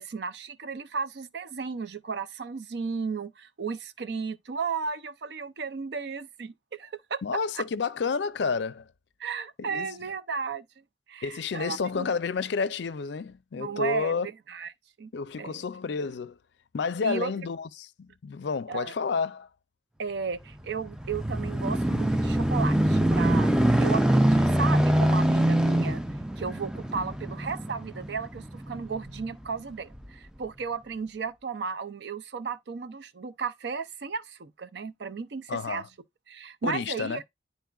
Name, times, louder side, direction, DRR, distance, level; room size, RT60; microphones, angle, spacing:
voice 1, 0.0-7.2 7.5-7.6 9.2-10.7 11.1-12.1 13.6-14.7 15.0-15.1 15.4-15.6 17.0-17.3 18.7-18.9 20.0-23.5 23.8-26.0 26.4-35.8 36.3-37.2, right 5 dB, 65° right, 0.5 m, -34 dB
voice 2, 7.2-8.9 9.6-9.9 11.2-14.3 15.1-16.4 16.7-19.5 35.5-35.9 36.6-37.2, left 5 dB, 65° left, 0.4 m, -30 dB
sound 1, 20.5-29.3 29.9-30.1, right 1 dB, 5° right, 0.3 m, -24 dB
10.5 x 4.1 x 2.3 m
head